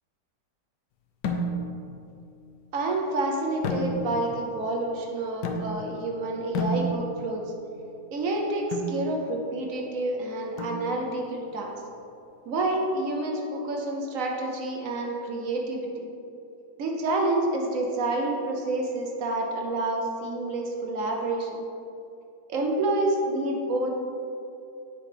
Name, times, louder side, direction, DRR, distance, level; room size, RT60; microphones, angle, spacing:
sound 1, 1.2-1.9 3.6-4.4 5.4-6.0 6.5-7.3 8.7-9.0 10.6-11.2, equal, 80° left, 1.2 m, -31 dB
voice 1, 2.7-7.5 8.1-11.8 12.5-15.9 16.8-21.5 22.5-24.0, right 2 dB, 60° right, 1 dB, 1.0 m, -28 dB
7.4 x 5.3 x 3.3 m, 2.7 s
omnidirectional pair, 1.8 m